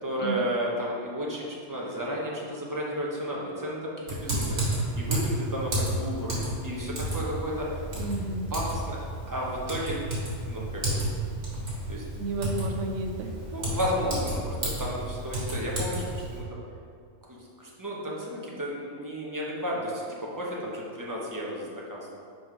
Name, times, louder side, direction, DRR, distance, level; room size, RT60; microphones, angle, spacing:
voice 1, 0.0-7.7 8.2-9.0 9.3-10.0 10.5-11.0 11.9-12.4 13.5-16.5 17.3-22.1, equal, 20° right, -4 dB, 0.7 m, -33 dB
Typing, 4.1-16.4, right 1 dB, 55° right, 1.8 m, -32 dB
voice 2, 8.0-8.5 12.1-13.3, right 2 dB, 75° right, 3 dB, 0.9 m, -32 dB
4.9 x 4.0 x 4.8 m, 2.3 s
omnidirectional pair, 1.3 m